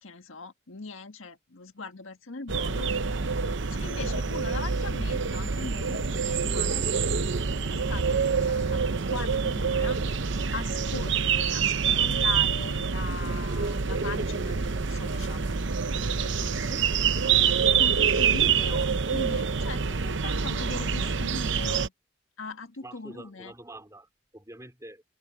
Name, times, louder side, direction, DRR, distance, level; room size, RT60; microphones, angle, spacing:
voice 1, 0.0-3.4 3.7-6.9 7.7-10.0 10.5-16.8 17.2-17.5 17.8-21.9 22.4-23.5, left 4 dB, 80° left, 1.6 m, -40 dB
sound 1, 2.5-21.9, right 6 dB, 60° right, 0.8 m, -26 dB
voice 2, 22.8-25.0, right 1 dB, 15° right, 3.6 m, -46 dB
head